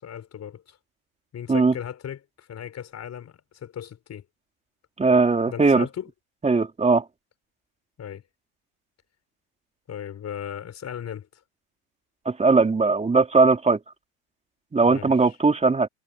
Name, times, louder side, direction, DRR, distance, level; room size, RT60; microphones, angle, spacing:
voice 1, 0.0-0.8 1.3-4.2 5.5-6.1 8.0-8.2 9.9-11.3 14.8-15.4, left 9 dB, 35° left, 6.1 m, -37 dB
voice 2, 5.0-5.8 6.4-7.0 12.2-13.8 14.7-15.9, right 4 dB, 15° right, 3.3 m, -19 dB
supercardioid pair, 105°, 44 cm